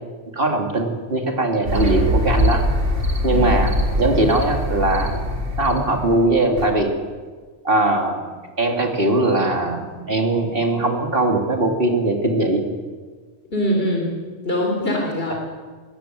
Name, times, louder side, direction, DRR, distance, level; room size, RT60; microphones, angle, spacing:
voice 1, 0.3-2.6 3.2-5.3 5.6-6.9 7.6-8.2 8.6-12.6, right 2 dB, 50° right, 2 dB, 3.0 m, -20 dB
sound 1, 1.7-6.7, equal, 85° right, 3.1 m, -22 dB
voice 2, 3.3-3.6 13.5-14.2 14.4-15.3, equal, 50° left, 0 dB, 3.8 m, -23 dB
22.5 x 17.5 x 7.7 m, 1.5 s
omnidirectional pair, 1.2 m